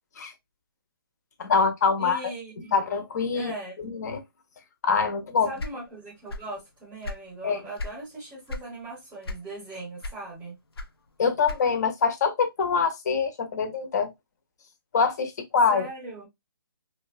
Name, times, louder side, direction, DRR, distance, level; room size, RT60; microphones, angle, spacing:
voice 1, 1.4-2.3 2.7-3.5 3.8-4.2 4.8-5.5 7.4-7.6 11.2-14.1 14.9-15.9, left 5 dB, 45° left, 0.6 m, -24 dB
voice 2, 2.0-2.7 3.3-3.8 5.4-10.6 15.7-16.3, right 2 dB, 10° right, 0.7 m, -39 dB
sound 1, 5.6-6.6 6.9-8.0 8.5-8.7 9.2-9.7 10.0-11.9, left 2 dB, 85° left, 0.6 m, -36 dB
2.7 x 2.1 x 2.3 m
hypercardioid pair, 160°, 13 cm